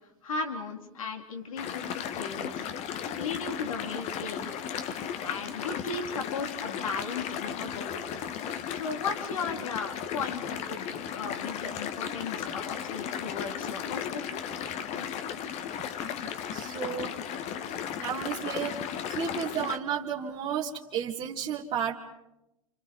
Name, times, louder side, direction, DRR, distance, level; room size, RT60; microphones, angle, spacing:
voice 1, 0.2-2.7 3.2-4.5 5.2-8.1 8.7-14.4, left 4 dB, 75° left, 3 dB, 4.1 m, -36 dB
sound 1, 1.6-19.8, left 8 dB, 40° left, 1.6 m, -35 dB
voice 2, 16.5-17.2 18.0-21.9, right 8 dB, 35° right, -4 dB, 2.3 m, -32 dB
29.5 x 29.0 x 5.5 m, 0.93 s
hypercardioid pair, 100°, 17 cm